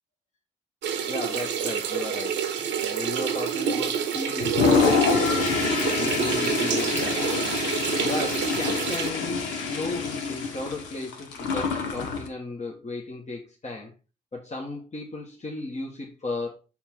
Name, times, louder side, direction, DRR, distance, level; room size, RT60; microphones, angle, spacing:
sound 1, 0.8-9.1, right 8 dB, 80° right, 0.9 m, -28 dB
voice 1, 1.1-5.6 6.0-7.3 7.7-13.9 14.3-16.6, left 2 dB, 40° left, 1.5 m, -35 dB
Toilet flush, 4.4-12.3, left 4 dB, 85° left, 1.0 m, -26 dB
5.7 x 4.2 x 4.5 m
hypercardioid pair, 40°, 19 cm